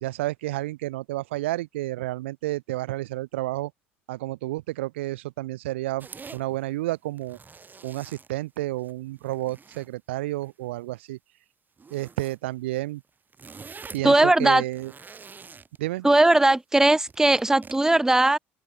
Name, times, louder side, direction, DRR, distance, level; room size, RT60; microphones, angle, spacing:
voice 1, 0.0-3.7 4.1-6.1 6.3-7.4 7.8-11.2 11.9-13.0 13.9-14.9 15.8-16.1, right 17 dB, 80° right, 1.9 m, -30 dB
sound 1, 6.0-6.4 7.1-8.9 9.2-9.9 10.4-10.7 11.8-12.4 12.7-12.8 13.1-14.1 14.6-15.8 17.1-17.8, right 5 dB, 30° right, 7.1 m, -45 dB
voice 2, 14.0-14.6 16.0-18.4, right 2 dB, 10° right, 0.8 m, -19 dB
hypercardioid pair, 60°, 6 cm